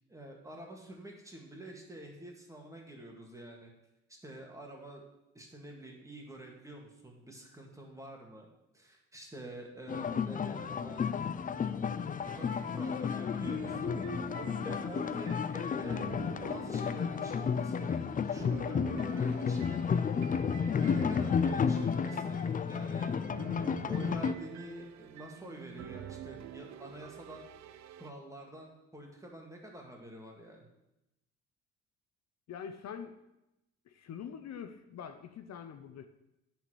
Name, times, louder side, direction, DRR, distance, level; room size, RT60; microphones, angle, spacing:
voice 1, 0.1-3.7 4.2-5.0 5.3-8.5 8.7-11.1 12.3-14.0 14.6-19.9 20.8-22.4 22.7-23.2 23.6-30.7, right 1 dB, 10° right, 0 dB, 2.0 m, -48 dB
sound 1, 9.9-24.3, left 6 dB, 30° left, 0.4 m, -32 dB
sound 2, 12.2-28.1, right 9 dB, 65° right, 0.5 m, -48 dB
voice 2, 32.5-33.2 33.9-36.1, left 7 dB, 60° left, 8 dB, 0.7 m, -44 dB
9.0 x 4.3 x 6.2 m, 0.91 s
cardioid pair, 90°, 30 cm